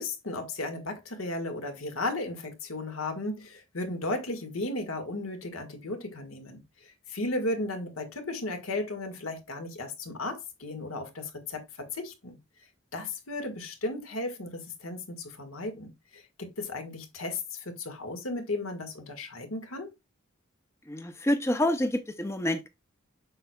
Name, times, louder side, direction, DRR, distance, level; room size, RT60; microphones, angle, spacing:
voice 1, 0.0-12.4 12.9-19.9, left 2 dB, 90° left, 1.7 m, -35 dB
voice 2, 20.9-22.7, left 1 dB, 15° left, 0.5 m, -27 dB
7.7 x 6.0 x 2.3 m
head